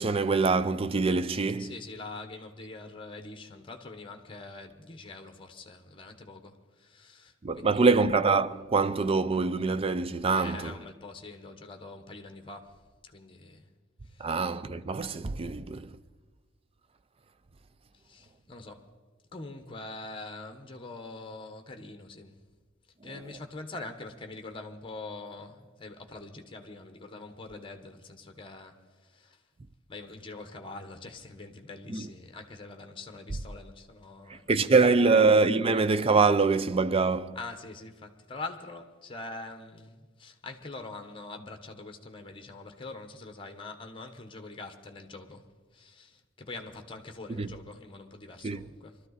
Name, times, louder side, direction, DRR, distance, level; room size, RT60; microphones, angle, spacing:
voice 1, 0.0-1.7 7.4-10.7 14.2-15.9 31.9-32.1 34.3-37.4 47.4-47.5 48.4-48.6, right 4 dB, 30° right, 0.5 m, -24 dB
voice 2, 1.6-8.0 10.3-12.8 13.1-13.7 14.0-14.4 17.9-18.9 19.3-22.4 23.0-29.4 29.9-35.2 37.3-49.0, left 3 dB, 25° left, 1.2 m, -44 dB
22.5 x 13.0 x 4.1 m
head